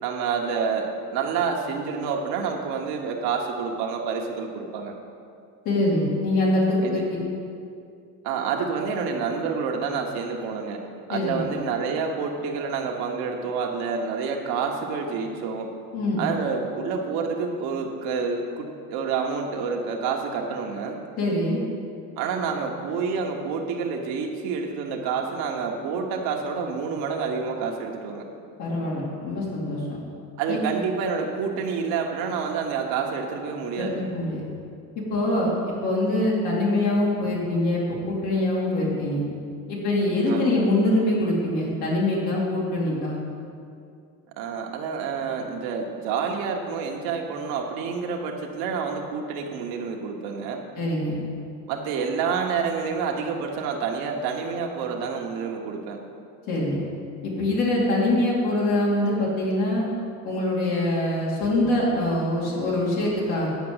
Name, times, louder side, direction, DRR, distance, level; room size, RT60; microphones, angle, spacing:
voice 1, 0.0-4.9 6.8-7.0 8.2-10.8 11.1-15.7 16.2-21.0 22.2-28.2 30.4-34.0 40.2-40.7 44.4-50.6 51.7-56.0, right 5 dB, 75° right, 1 dB, 1.3 m, -28 dB
voice 2, 5.6-7.2 11.1-11.5 15.9-16.2 21.2-21.6 28.6-30.0 30.5-30.6 33.8-34.5 35.1-39.3 39.7-43.2 50.7-51.2 56.5-56.7 57.2-59.9 60.2-63.5, left 1 dB, 75° left, -5 dB, 2.8 m, -24 dB
9.4 x 5.3 x 7.9 m, 2.4 s
cardioid pair, 110°, 37 cm